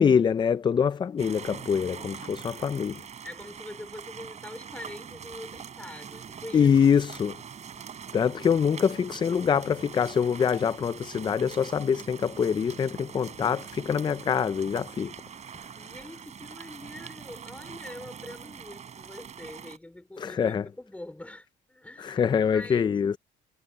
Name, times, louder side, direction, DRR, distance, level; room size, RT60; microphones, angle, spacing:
voice 1, 0.0-3.0 6.5-7.4 8.1-15.1 20.2-20.7 22.0-23.2, left 7 dB, 25° left, 0.4 m, -24 dB
sound 1, 1.2-19.8, right 7 dB, 40° right, 6.7 m, -43 dB
voice 2, 3.2-6.7 15.8-22.2 22.5-23.0, left 1 dB, 10° left, 4.1 m, -44 dB
cardioid pair, 110°, 17 cm